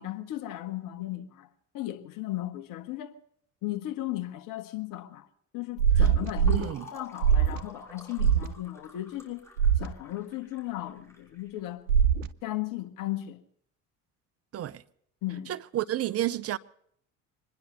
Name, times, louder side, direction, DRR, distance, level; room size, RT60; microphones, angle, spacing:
voice 1, 0.0-1.5 1.7-3.2 3.6-5.3 5.5-9.5 9.8-11.8 12.4-13.4 15.2-15.5, left 15 dB, 60° left, 1.6 m, -36 dB
Fill (with liquid), 5.7-12.1, left 2 dB, 5° left, 6.0 m, -52 dB
sound 1, 5.8-6.6 7.2-7.6 8.2-8.5 9.6-9.9 11.9-12.3, right 8 dB, 90° right, 0.6 m, -22 dB
voice 2, 6.5-6.8 14.5-14.8 15.5-16.6, right 13 dB, 40° right, 0.6 m, -30 dB
25.0 x 10.5 x 5.5 m
hypercardioid pair, 55°, 38 cm